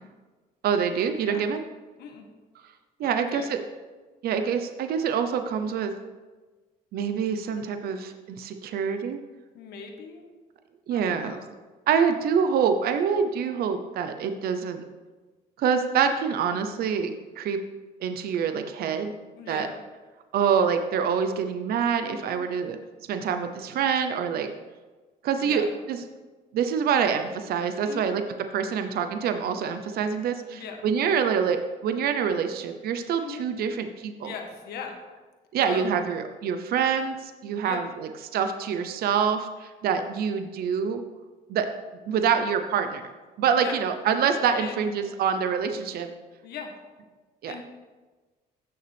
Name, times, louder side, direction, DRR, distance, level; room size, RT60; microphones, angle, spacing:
voice 1, 0.6-1.6 3.0-3.6 4.2-5.9 6.9-9.2 10.9-11.4 11.9-14.8 15.6-17.6 18.0-19.1 19.5-19.7 20.3-22.8 23.1-24.5 25.2-26.0 26.5-28.2 28.5-34.3 35.5-41.0 41.5-41.7 42.1-43.0 43.4-46.1 47.4-47.5, right 7 dB, 65° right, 8 dB, 0.8 m, -26 dB
voice 2, 3.0-3.5 9.5-10.2 10.9-11.5 19.3-19.8 22.0-22.4 25.4-25.8 27.8-28.1 30.5-30.9 33.2-33.4 34.2-35.0 35.6-36.1 37.5-37.8 43.6-43.8 44.5-44.8 46.4-46.8 47.4-47.6, left 6 dB, 75° left, 3 dB, 1.5 m, -39 dB
15.5 x 6.7 x 3.5 m, 1.3 s
cardioid pair, 110°, 17 cm